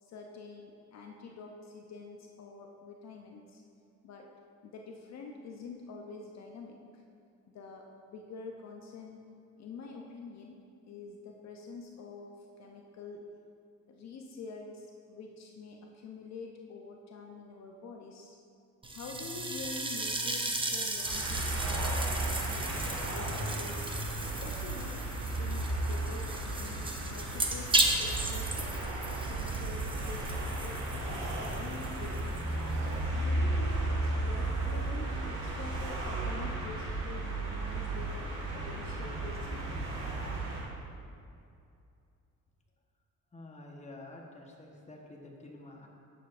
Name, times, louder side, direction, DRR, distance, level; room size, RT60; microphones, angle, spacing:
voice 1, 0.0-3.6 4.0-4.3 4.6-7.0 7.5-9.2 9.6-13.3 13.9-18.4 18.9-22.7 23.1-23.9 24.2-28.9 29.3-30.8 31.3-32.3 32.7-38.2 38.5-39.5, left 4 dB, 60° left, 1 dB, 0.7 m, -47 dB
sound 1, 18.8-33.1, right 2 dB, 15° right, 0.7 m, -36 dB
sound 2, 21.0-40.6, right 2 dB, 85° right, 1.7 m, -34 dB
voice 2, 43.3-45.9, left 2 dB, 25° left, 0 dB, 1.1 m, -49 dB
10.0 x 6.8 x 2.5 m, 2.5 s
cardioid pair, 90°, 30 cm